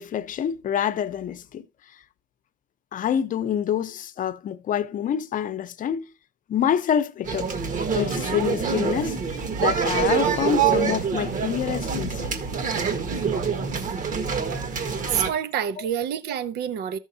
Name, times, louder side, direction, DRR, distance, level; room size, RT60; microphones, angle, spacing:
voice 1, 0.0-1.6 2.9-6.1 6.5-7.5 7.9-9.2 9.6-12.4, left 9 dB, 50° left, 0.8 m, -26 dB
sound 1, 7.2-15.3, right 6 dB, 50° right, 1.7 m, -25 dB
voice 2, 15.1-17.0, right 9 dB, 80° right, 0.9 m, -27 dB
13.5 x 6.3 x 2.7 m
cardioid pair, 110°, 17 cm